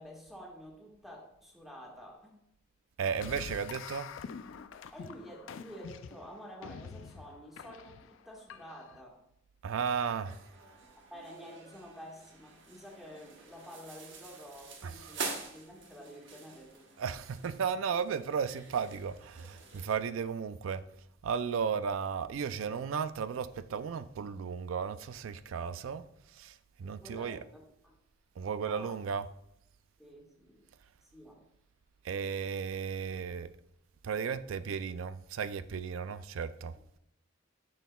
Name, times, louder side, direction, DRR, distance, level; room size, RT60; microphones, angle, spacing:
voice 1, 0.0-2.3 4.9-9.2 11.1-17.0 26.8-27.9 28.6-29.0 30.0-30.6 31.0-31.5, equal, ahead, 1.6 m, -50 dB
voice 2, 3.0-4.1 9.6-10.4 14.8-14.9 17.0-20.8 21.2-26.0 26.3-27.4 28.4-29.3 32.0-33.5 34.0-36.7, right 6 dB, 85° right, 0.4 m, -34 dB
sound 1, 3.2-9.0, left 6 dB, 70° left, 0.4 m, -46 dB
sound 2, 10.0-20.0, right 4 dB, 65° right, 1.1 m, -46 dB
10.5 x 6.3 x 2.3 m
head